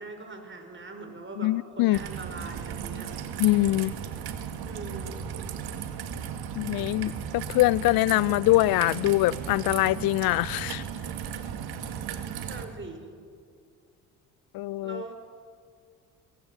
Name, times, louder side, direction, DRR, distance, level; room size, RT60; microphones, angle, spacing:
voice 1, 0.0-3.2 4.6-5.3 12.5-13.1 14.8-15.1, right 3 dB, 25° right, 5.4 m, -41 dB
voice 2, 1.4-2.0 3.4-3.9 6.5-10.8 14.5-15.0, left 18 dB, 55° left, 0.6 m, -23 dB
sound 1, 1.8-11.2, left 2 dB, 20° left, 7.4 m, -55 dB
Raindrop / Trickle dribble, 1.9-12.7, right 8 dB, 60° right, 2.3 m, -36 dB
26.5 x 23.0 x 6.4 m
hypercardioid pair, 50°, 43 cm